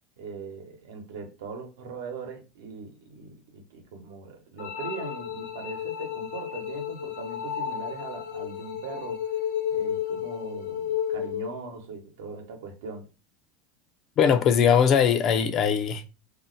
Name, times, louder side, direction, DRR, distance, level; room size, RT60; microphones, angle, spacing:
voice 1, 0.2-9.3 9.7-13.1, right 4 dB, 85° right, 0.9 m, -40 dB
sound 1, 4.6-11.6, left 9 dB, 75° left, 0.9 m, -32 dB
voice 2, 14.2-16.1, left 7 dB, 35° left, 0.4 m, -20 dB
2.6 x 2.0 x 3.8 m
supercardioid pair, 145°, 0 cm